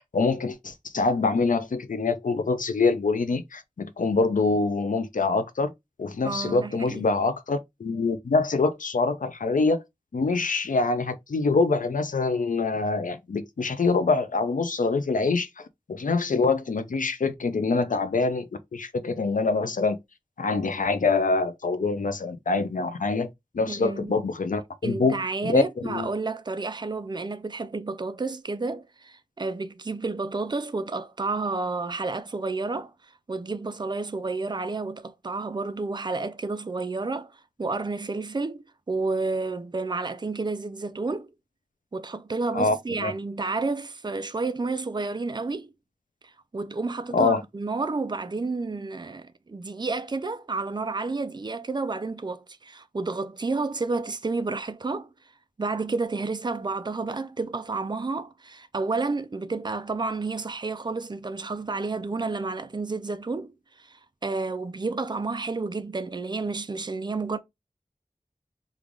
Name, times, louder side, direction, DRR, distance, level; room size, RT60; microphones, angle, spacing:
voice 1, 0.1-5.7 6.0-9.8 10.1-15.5 15.9-20.0 20.4-23.3 23.5-26.1 42.5-42.8 43.0-43.1 47.1-47.4, left 3 dB, 85° left, 0.5 m, -25 dB
voice 2, 6.2-7.1 23.7-24.3 24.8-32.9 33.3-41.3 41.9-45.7 46.5-55.1 55.6-67.4, right 3 dB, 35° right, 0.4 m, -30 dB
3.2 x 2.4 x 3.6 m
wide cardioid pair, 55°, 13 cm